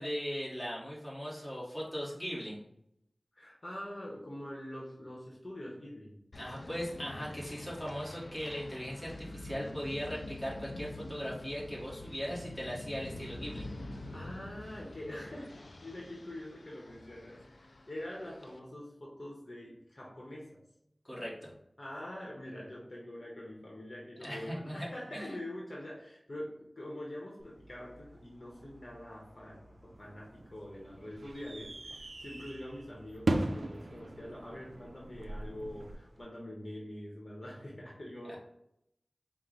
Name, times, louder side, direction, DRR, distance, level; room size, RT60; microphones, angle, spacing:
voice 1, 0.0-2.7 6.4-13.7 21.0-21.5 24.2-25.2 38.3-38.4, equal, 10° left, -6 dB, 1.2 m, -39 dB
voice 2, 3.3-6.2 14.1-20.6 21.8-38.4, left 1 dB, 55° left, -3 dB, 0.9 m, -44 dB
sound 1, 6.3-18.6, left 2 dB, 75° left, 0.4 m, -46 dB
sound 2, 27.4-36.2, equal, 35° right, 0.7 m, -59 dB
sound 3, 30.0-36.0, right 2 dB, 90° right, 0.4 m, -38 dB
4.4 x 2.0 x 3.9 m, 0.80 s
wide cardioid pair, 50°, 0 cm